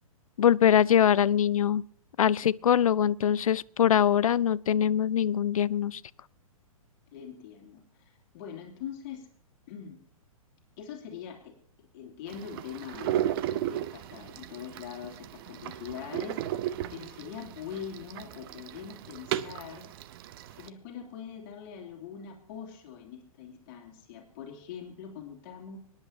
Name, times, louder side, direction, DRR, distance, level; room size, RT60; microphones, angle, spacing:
voice 1, 0.4-1.8 2.2-6.0, left 9 dB, 70° left, 0.4 m, -23 dB
voice 2, 7.1-9.3 9.7-10.0 10.8-13.2 13.6-19.9 20.6-25.8, left 8 dB, 40° left, 2.8 m, -43 dB
sound 1, 12.3-20.7, right 12 dB, 40° right, 0.8 m, -35 dB
25.0 x 10.5 x 2.8 m
figure-of-eight pair, 115°, 18 cm